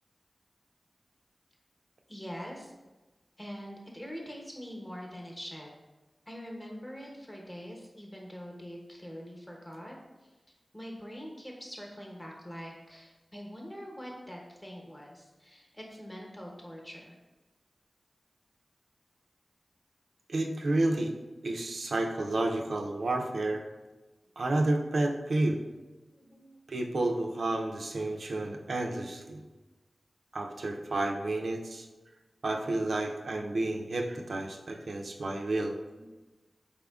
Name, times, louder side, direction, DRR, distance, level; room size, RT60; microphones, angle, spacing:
voice 1, 2.1-2.7 3.4-5.7 6.3-10.0 10.7-17.1 25.7-25.8 26.1-26.6 35.9-36.1, equal, 15° left, -1 dB, 0.9 m, -44 dB
voice 2, 20.3-21.1 21.4-23.6 24.4-25.6 26.7-29.4 30.3-31.9 32.4-35.7, right 2 dB, 85° right, 2 dB, 0.4 m, -30 dB
4.2 x 3.5 x 2.3 m, 1.2 s
wide cardioid pair, 75°, 0 cm